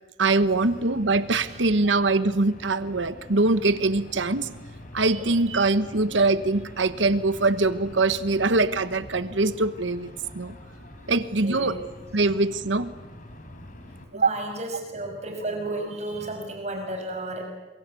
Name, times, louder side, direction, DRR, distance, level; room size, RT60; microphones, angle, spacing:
voice 1, 0.2-4.5 4.9-10.5 11.1-11.7 12.1-12.9 14.2-14.3, right 3 dB, 80° right, 13 dB, 1.2 m, -23 dB
sound 1, 0.5-14.0, left 1 dB, 45° left, 3.9 m, -44 dB
voice 2, 11.2-11.8 14.1-17.5, right 1 dB, 35° right, 3 dB, 5.9 m, -33 dB
28.0 x 23.0 x 8.4 m, 1.1 s
head